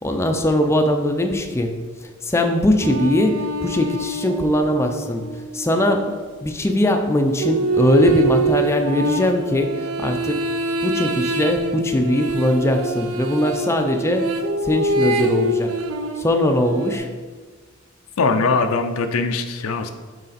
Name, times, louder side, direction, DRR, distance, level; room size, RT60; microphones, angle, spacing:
voice 1, 0.0-1.8 2.2-5.3 5.5-6.2 6.4-10.4 10.8-14.4 14.6-15.7 16.2-17.1, left 1 dB, 15° left, 4 dB, 0.4 m, -20 dB
sound 1, 2.8-6.3 7.4-17.0, right 2 dB, 75° right, 0.5 m, -25 dB
voice 2, 18.2-19.9, left 4 dB, 80° left, 7 dB, 0.5 m, -21 dB
6.5 x 4.0 x 4.1 m, 1.5 s
head